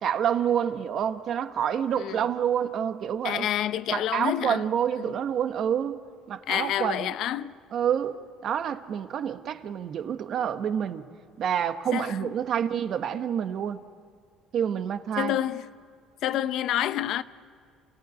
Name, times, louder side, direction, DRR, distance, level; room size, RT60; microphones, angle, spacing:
voice 1, 0.0-3.5 3.9-6.0 6.3-7.1 7.7-8.1 8.4-11.1 11.4-13.8 14.5-15.4, right 9 dB, 55° right, 1.1 m, -28 dB
voice 2, 3.2-4.6 5.1-5.2 6.5-7.5 11.9-12.3 15.2-15.7 16.2-17.2, left 12 dB, 65° left, 0.7 m, -28 dB
27.5 x 17.0 x 9.5 m
cardioid pair, 110°, 0 cm